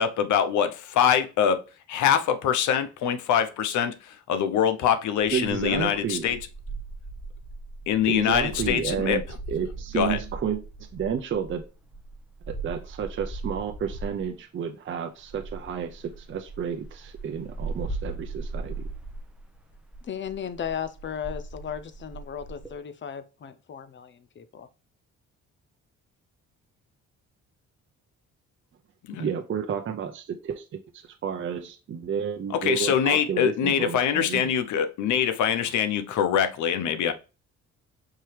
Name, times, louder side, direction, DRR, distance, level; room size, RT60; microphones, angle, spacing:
voice 1, 0.0-1.6 1.9-6.4 7.9-9.2 9.9-10.2 29.1-29.2 32.5-37.1, left 8 dB, 75° left, 0.7 m, -24 dB
sound 1, 5.2-14.3 15.2-22.7, right 2 dB, 5° right, 0.8 m, -38 dB
voice 2, 5.3-6.3 8.1-9.2 9.5-10.6 10.9-11.6 12.6-18.9 29.2-34.5, right 7 dB, 40° right, 0.6 m, -31 dB
voice 3, 20.0-24.7, left 8 dB, 40° left, 0.6 m, -36 dB
4.7 x 2.9 x 3.2 m
cardioid pair, 90°, 30 cm